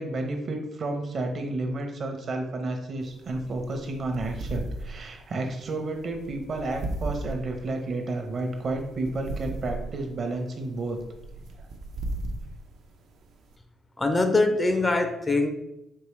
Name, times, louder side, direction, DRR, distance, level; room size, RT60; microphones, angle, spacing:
voice 1, 0.0-11.0, right 2 dB, 50° right, 4 dB, 0.8 m, -31 dB
sound 1, 3.0-13.6, right 2 dB, 75° right, 0.6 m, -37 dB
voice 2, 14.0-15.5, left 2 dB, 20° left, 6 dB, 0.5 m, -23 dB
4.7 x 3.0 x 3.1 m, 0.87 s
cardioid pair, 90°, 0 cm